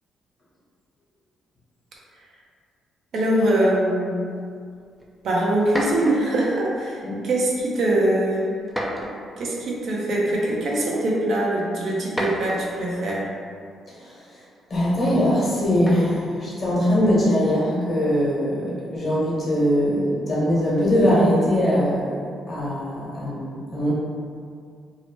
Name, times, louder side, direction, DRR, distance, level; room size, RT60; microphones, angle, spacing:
voice 1, 3.1-4.2 5.2-8.5 9.4-13.3, right 1 dB, 65° right, -4 dB, 0.6 m, -23 dB
sound 1, 5.0-5.1 5.6-6.4 7.3-7.6 8.7-9.4 10.5-10.6 11.9-13.5 15.8-16.3, equal, 5° right, 0.4 m, -31 dB
voice 2, 14.7-22.1 22.5-23.9, equal, 40° left, -7 dB, 1.1 m, -21 dB
2.7 x 2.1 x 3.0 m, 2.2 s
cardioid pair, 90°, 0 cm